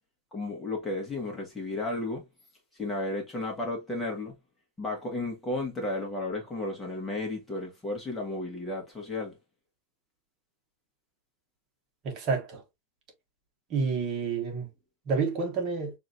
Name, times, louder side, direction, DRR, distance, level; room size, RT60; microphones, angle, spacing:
voice 1, 0.3-2.3 2.7-4.4 4.8-9.4, left 2 dB, 10° left, 1.3 m, -33 dB
voice 2, 12.0-12.6 13.7-14.7 15.1-15.9, right 5 dB, 35° right, 1.4 m, -29 dB
6.0 x 2.7 x 2.5 m
supercardioid pair, 165°, 0 cm